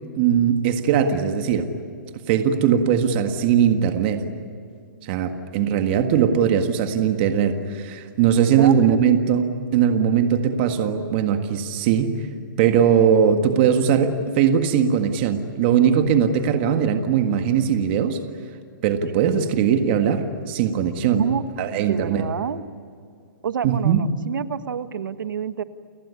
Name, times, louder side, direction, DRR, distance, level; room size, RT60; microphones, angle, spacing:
voice 1, 0.2-1.7 2.3-4.2 5.0-9.5 9.7-12.1 12.6-18.2 18.8-21.2 21.6-22.2 23.6-24.0, right 8 dB, 30° right, 7 dB, 1.7 m, -20 dB
voice 2, 8.6-9.0 21.2-21.4 21.7-22.6 23.4-25.6, right 8 dB, 70° right, 11 dB, 1.5 m, -27 dB
29.5 x 18.5 x 9.8 m, 2.3 s
hypercardioid pair, 170°, 11 cm